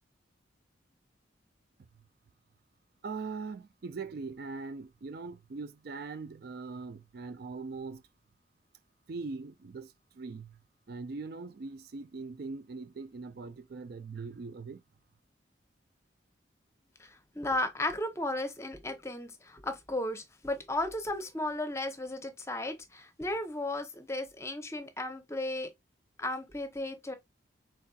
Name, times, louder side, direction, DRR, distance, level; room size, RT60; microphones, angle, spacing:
voice 1, 3.0-8.0 9.1-10.6 10.9-14.8, right 4 dB, 55° right, 0.4 m, -41 dB
voice 2, 17.0-25.7 26.2-27.1, left 1 dB, 15° left, 0.8 m, -35 dB
4.6 x 4.1 x 2.3 m
head